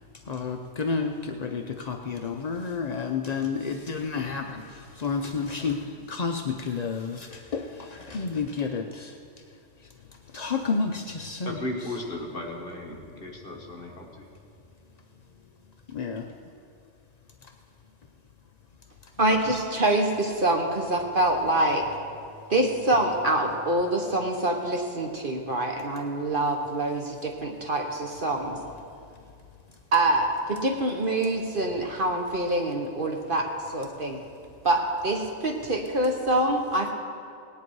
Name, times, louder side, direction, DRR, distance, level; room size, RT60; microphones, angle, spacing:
voice 1, 0.3-4.6 5.0-5.8 6.1-9.1 10.3-11.6 15.9-16.2, left 5 dB, 65° left, 0.4 m, -30 dB
voice 2, 11.4-14.3, left 1 dB, 40° left, 1.6 m, -35 dB
voice 3, 19.2-21.8 22.5-28.6 29.9-33.5 33.7-34.2 34.6-36.9, right 1 dB, 40° right, 1.1 m, -25 dB
18.5 x 10.0 x 4.7 m
omnidirectional pair, 1.5 m